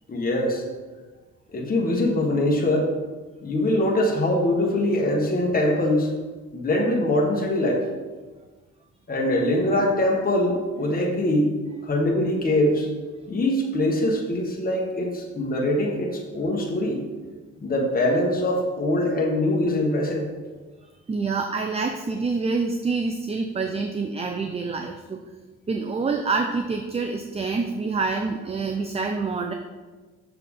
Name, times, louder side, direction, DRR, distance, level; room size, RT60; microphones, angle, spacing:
voice 1, 0.1-0.6 1.5-2.9 3.4-6.1 6.5-7.8 9.1-11.5 11.8-12.9 13.3-17.0 17.6-20.3, left 1 dB, 30° left, -1 dB, 1.3 m, -23 dB
voice 2, 21.1-25.2 25.7-29.5, right 4 dB, 20° right, 5 dB, 0.5 m, -27 dB
6.7 x 5.9 x 3.6 m, 1.3 s
cardioid pair, 90°, 30 cm